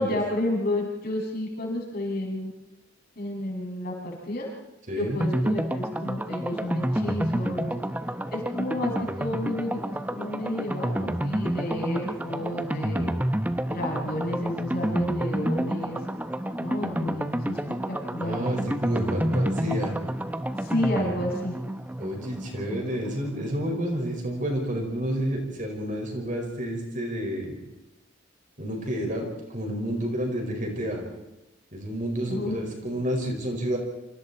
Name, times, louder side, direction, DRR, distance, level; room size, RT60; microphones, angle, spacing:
voice 1, 0.0-2.5 3.2-4.5 5.0-7.7 8.3-9.8 10.1-13.1 13.7-16.0 16.6-17.6 17.9-18.4 19.5-19.8 20.6-21.6 22.7-22.8 32.3-32.6 32.9-33.0, left 1 dB, 50° left, -2 dB, 7.2 m, -31 dB
voice 2, 4.9-5.2 18.2-19.9 22.0-27.6 28.6-29.2 29.5-31.0 31.7-33.8, equal, 40° right, 2 dB, 5.4 m, -30 dB
sound 1, 5.2-23.8 24.1-24.2 24.4-24.5, right 1 dB, 10° right, 0.8 m, -29 dB
28.5 x 26.5 x 4.4 m, 0.97 s
head